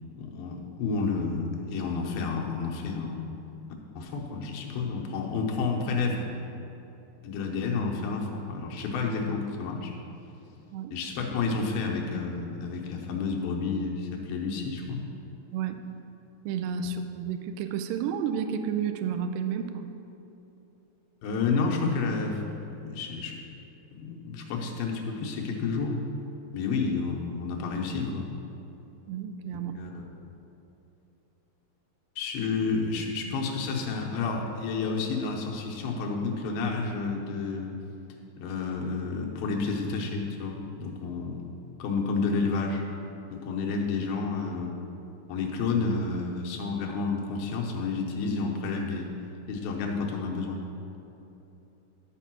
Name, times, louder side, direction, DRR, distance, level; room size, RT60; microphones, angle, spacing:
voice 1, 0.2-3.3 4.0-6.3 7.2-9.9 10.9-15.0 21.2-22.4 22.7-23.4 24.0-26.0 26.5-28.3 29.8-30.0 32.2-37.7 38.4-41.4 41.8-42.8 43.3-44.8 45.3-49.1 49.5-50.6, left 4 dB, 85° left, 0 dB, 2.9 m, -30 dB
voice 2, 15.5-15.8 16.5-19.9 29.1-29.7, right 7 dB, 80° right, 8 dB, 2.2 m, -31 dB
12.0 x 4.4 x 6.1 m, 3.0 s
omnidirectional pair, 4.3 m